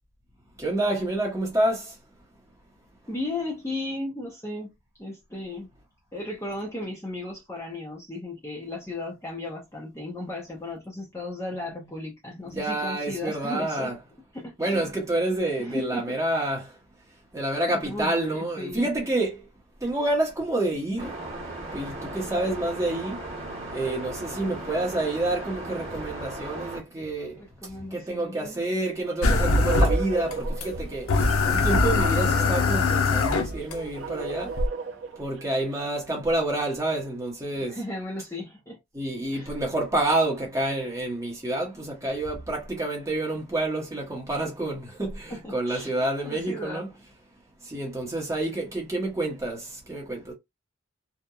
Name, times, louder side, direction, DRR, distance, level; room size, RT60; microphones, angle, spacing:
voice 1, 0.6-1.9 12.4-13.9 14.6-16.8 17.3-19.5 19.8-21.2 21.7-27.4 27.9-31.1 31.4-34.5 35.2-37.8 38.9-46.9 47.6-50.3, right 2 dB, 15° right, 0.8 m, -28 dB
voice 2, 3.1-4.7 5.0-5.7 6.1-14.0 14.3-14.8 15.6-16.5 17.7-18.9 27.4-28.6 37.7-38.8 39.3-39.5 45.3-45.9 46.2-46.9, left 2 dB, 15° left, 0.6 m, -35 dB
sound 1, 21.0-26.8, right 1 dB, 35° right, 1.1 m, -37 dB
sound 2, 29.0-35.8, right 4 dB, 55° right, 0.4 m, -36 dB
sound 3, 29.2-30.3 30.6-30.7 31.1-33.7 34.6-34.7, left 3 dB, 85° left, 0.6 m, -22 dB
2.8 x 2.1 x 2.3 m
head